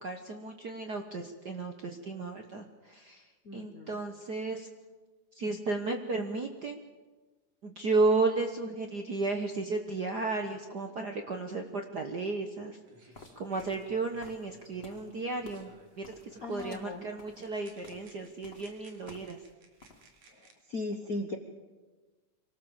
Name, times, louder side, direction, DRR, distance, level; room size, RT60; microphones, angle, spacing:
voice 1, 0.0-4.7 5.3-6.8 7.6-12.8 13.0-15.7 16.0-19.4, right 3 dB, 55° right, 4 dB, 1.2 m, -33 dB
voice 2, 3.4-4.0 16.4-17.0 20.3-21.4, left 2 dB, 50° left, 4 dB, 1.0 m, -38 dB
sound 1, 12.5-12.6 12.8-16.0 16.3-16.7 17.4-20.5, right 3 dB, 70° right, 3.7 m, -60 dB
sound 2, 13.1-19.5 19.8-20.3, left 3 dB, 25° left, 1.8 m, -54 dB
25.0 x 18.0 x 7.3 m, 1.3 s
omnidirectional pair, 3.3 m